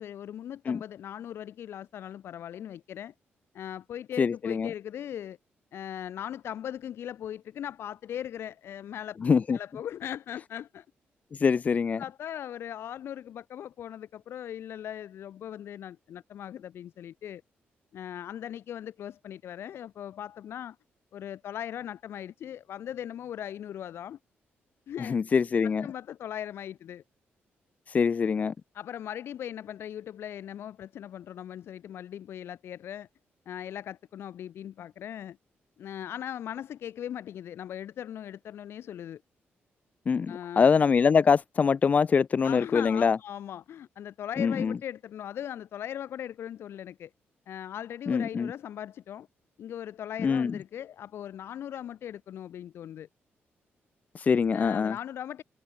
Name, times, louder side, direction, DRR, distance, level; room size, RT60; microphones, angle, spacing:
voice 1, 0.0-3.1 3.5-5.4 5.7-9.2 9.5-10.9 12.0-17.4 17.9-20.8 21.1-24.2 24.9-25.2 25.6-27.0 28.7-33.1 33.5-35.4 35.8-39.2 40.3-40.7 42.4-47.1 47.5-49.3 49.6-53.1 54.5-55.4, left 10 dB, 70° left, 2.5 m, -39 dB
voice 2, 4.2-4.7 9.2-9.6 11.3-12.0 25.0-25.9 27.9-28.5 40.1-43.2 44.4-44.8 48.1-48.5 50.2-50.5 54.1-55.0, left 6 dB, 35° left, 1.1 m, -24 dB
cardioid pair, 140°, 4 cm